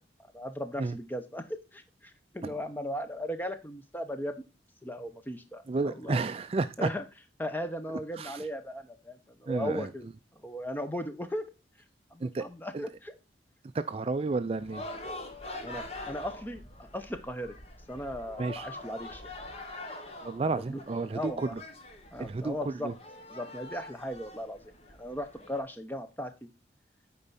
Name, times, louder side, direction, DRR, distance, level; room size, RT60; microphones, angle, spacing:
voice 1, 0.3-4.5 4.8-6.2 6.8-7.0 7.4-10.1 10.4-11.5 12.1-13.1 15.6-17.5 17.9-19.3 20.5-20.8 21.1-21.5 22.1-22.9 23.3-24.7 25.0-26.3, equal, 10° left, 0.7 m, -37 dB
voice 2, 5.7-6.9 7.9-8.5 9.5-9.9 12.2-12.4 12.7-12.8 13.7-14.9 18.4-18.7 20.2-21.6 22.2-22.9, right 3 dB, 35° right, 0.3 m, -32 dB
sound 1, 14.6-25.6, left 2 dB, 35° left, 1.1 m, -44 dB
8.7 x 4.6 x 4.1 m
head